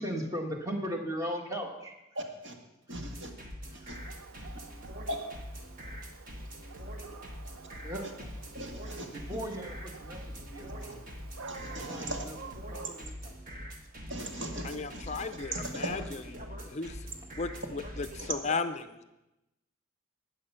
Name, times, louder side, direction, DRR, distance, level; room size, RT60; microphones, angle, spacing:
voice 1, 0.0-1.9 3.7-4.0 7.8-8.0 9.1-11.0 11.8-12.3 12.7-13.6, equal, 15° right, 2 dB, 1.5 m, -37 dB
voice 2, 2.1-2.5 2.9-3.3 3.7-4.0 5.1-5.2 8.0-8.1 8.5-9.4 11.5-12.2 14.1-15.9 18.2-18.3, right 1 dB, 70° right, 2 dB, 2.0 m, -39 dB
sound 1, 2.9-18.3, equal, 40° right, 1.6 m, -43 dB
Dog, 3.9-13.1, right 5 dB, 85° right, 0.6 m, -50 dB
voice 3, 14.6-16.2 16.7-17.1 17.4-19.0, left 4 dB, 35° left, 10 dB, 0.5 m, -35 dB
13.0 x 9.2 x 5.6 m, 0.93 s
head